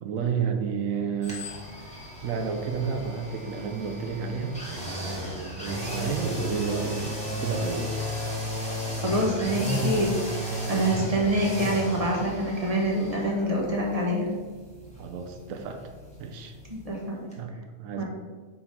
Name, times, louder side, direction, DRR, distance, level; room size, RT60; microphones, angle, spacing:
voice 1, 0.0-1.5 1.8-4.5 5.0-7.9 10.7-11.1 15.0-15.9 16.2-16.5 17.4-18.0, right 5 dB, 80° right, 5 dB, 1.1 m, -31 dB
sound 1, 1.2-17.0 17.3-17.4, equal, 5° left, 1.2 m, -34 dB
voice 2, 9.0-14.3 16.7-17.2 18.0-18.1, right 1 dB, 30° right, -2 dB, 1.1 m, -26 dB
4.7 x 3.7 x 5.4 m, 1.4 s
omnidirectional pair, 1.4 m